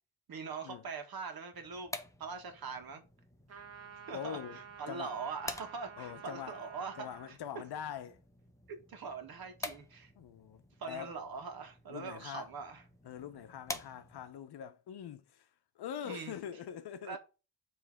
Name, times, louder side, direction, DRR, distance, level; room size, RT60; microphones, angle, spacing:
voice 1, 0.3-1.9 2.2-3.0 4.1-7.4 8.7-10.1 10.8-12.8 16.0-16.3 17.0-17.2, right 5 dB, 55° right, 1.7 m, -42 dB
sound 1, 1.5-14.4, left 2 dB, 5° left, 0.6 m, -49 dB
sound 2, 3.5-7.3, right 7 dB, 35° right, 1.3 m, -51 dB
voice 2, 4.1-4.6 4.9-5.1 6.0-6.7 7.0-8.2 10.2-11.1 11.9-12.5 13.0-15.5 15.8-17.2, left 9 dB, 60° left, 0.8 m, -43 dB
7.3 x 3.3 x 4.8 m
wide cardioid pair, 160°, 43 cm